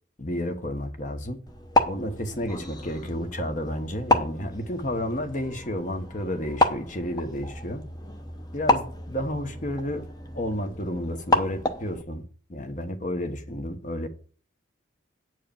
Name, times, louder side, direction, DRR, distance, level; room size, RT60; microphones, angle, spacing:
voice 1, 0.2-1.4 1.8-7.8 8.5-10.1 10.3-12.2 12.5-14.1, left 1 dB, 40° left, 1.2 m, -31 dB
sound 1, 1.5-12.0, left 2 dB, 20° left, 0.9 m, -29 dB
9.2 x 4.7 x 7.1 m
head